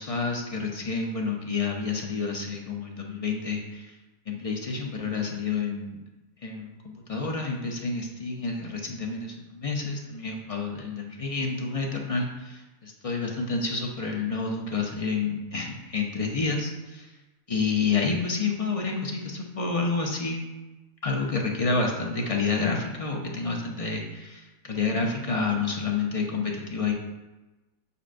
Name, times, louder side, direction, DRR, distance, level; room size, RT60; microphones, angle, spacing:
voice 1, 0.0-3.9 4.3-6.0 6.4-17.1 17.5-20.4 21.0-26.9, left 4 dB, 35° left, 0 dB, 0.6 m, -29 dB
6.8 x 6.1 x 2.5 m, 1.1 s
omnidirectional pair, 1.5 m